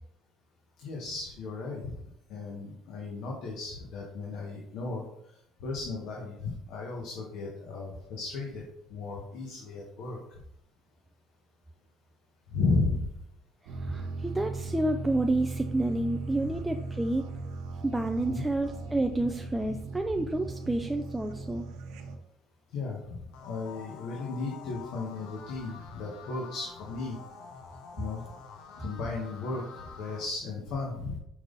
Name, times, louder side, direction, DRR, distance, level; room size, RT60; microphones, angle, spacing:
voice 1, 0.8-1.9 2.3-5.0 5.6-8.6 8.9-10.2 12.5-13.1 18.3-18.4 22.7-27.2 28.0-28.2 28.8-31.2, left 3 dB, 65° left, -2 dB, 1.4 m, -34 dB
sound 1, 13.7-22.2, right 3 dB, 90° right, 1.0 m, -38 dB
voice 2, 13.8-17.3 17.8-21.6, right 2 dB, 5° right, 4 dB, 0.3 m, -29 dB
sound 2, 23.3-30.2, left 5 dB, 85° left, 1.2 m, -48 dB
6.0 x 5.3 x 4.0 m, 0.78 s
cardioid pair, 160°, 0 cm